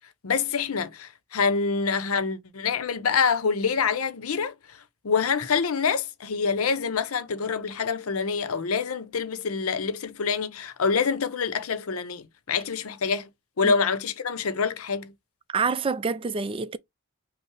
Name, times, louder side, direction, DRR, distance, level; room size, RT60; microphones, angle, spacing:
voice 1, 0.2-4.8 5.0-13.3 13.6-15.1, left 5 dB, 85° left, 0.7 m, -26 dB
voice 2, 15.5-16.8, right 5 dB, 25° right, 0.3 m, -27 dB
5.5 x 2.0 x 4.6 m
head